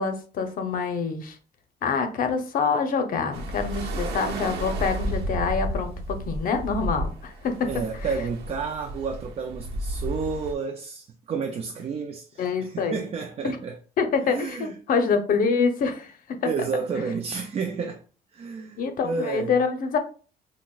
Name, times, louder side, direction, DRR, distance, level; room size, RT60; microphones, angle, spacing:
voice 1, 0.0-1.4 1.8-7.7 12.4-13.0 13.4-13.6 14.0-16.1 18.8-20.0, left 5 dB, 55° left, 0.7 m, -26 dB
sound 1, 3.3-10.5, right 1 dB, 80° right, 0.9 m, -32 dB
voice 2, 7.7-13.8 14.3-14.8 16.4-18.0 18.3-19.6, right 5 dB, 35° right, 0.4 m, -31 dB
5.8 x 2.2 x 2.3 m
cardioid pair, 110°, 17 cm